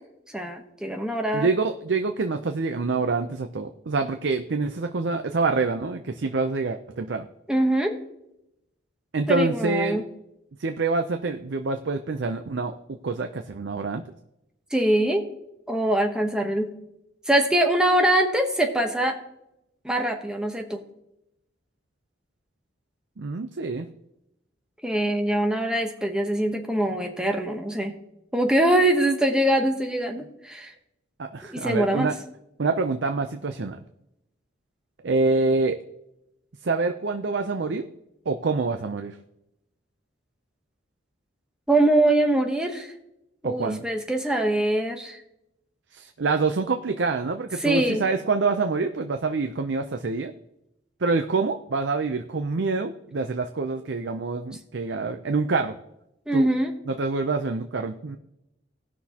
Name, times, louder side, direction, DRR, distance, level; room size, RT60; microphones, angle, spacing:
voice 1, 0.3-1.5 7.5-8.0 9.3-10.0 14.7-15.3 15.7-16.7 17.3-19.2 19.8-20.8 24.8-28.0 28.3-30.7 31.5-32.1 41.7-42.9 43.4-45.2 47.6-48.0 56.3-56.7, right 1 dB, 5° right, 3 dB, 1.0 m, -23 dB
voice 2, 1.3-7.3 9.1-10.0 10.6-12.7 13.0-14.0 23.2-23.9 31.2-32.2 32.6-33.8 35.0-35.8 36.6-37.8 38.3-39.2 43.4-43.8 45.9-50.3 51.0-55.7 56.3-56.5 56.9-58.2, right 3 dB, 65° right, 7 dB, 0.6 m, -26 dB
18.0 x 6.1 x 2.9 m, 0.84 s
head